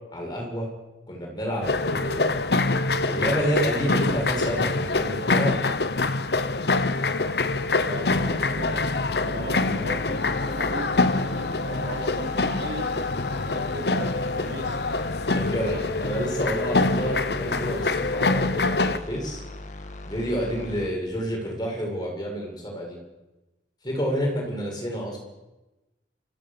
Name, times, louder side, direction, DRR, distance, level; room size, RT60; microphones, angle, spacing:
voice 1, 0.1-0.7 1.1-2.4 3.0-5.5 13.4-13.5 15.3-19.4 20.0-23.0 23.8-25.2, equal, 25° left, 0 dB, 6.9 m, -29 dB
sound 1, 1.6-19.0, left 3 dB, 65° left, 1.1 m, -25 dB
voice 2, 7.8-8.9 9.2-10.2 10.5-10.9 11.4-12.9 13.5-14.8, right 1 dB, 80° right, 1 dB, 4.7 m, -37 dB
sound 2, 8.1-20.9, left 1 dB, 45° left, 1.8 m, -40 dB
29.0 x 15.5 x 6.9 m, 1.0 s
head